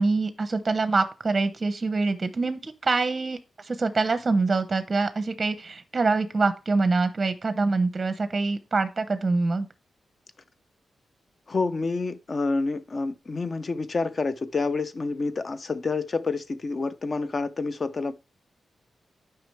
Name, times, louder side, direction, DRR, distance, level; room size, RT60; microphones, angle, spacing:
voice 1, 0.0-9.7, right 3 dB, 25° right, 0.7 m, -25 dB
voice 2, 11.5-18.1, left 3 dB, 30° left, 0.6 m, -28 dB
9.5 x 5.8 x 3.3 m
wide cardioid pair, 170°, 0 cm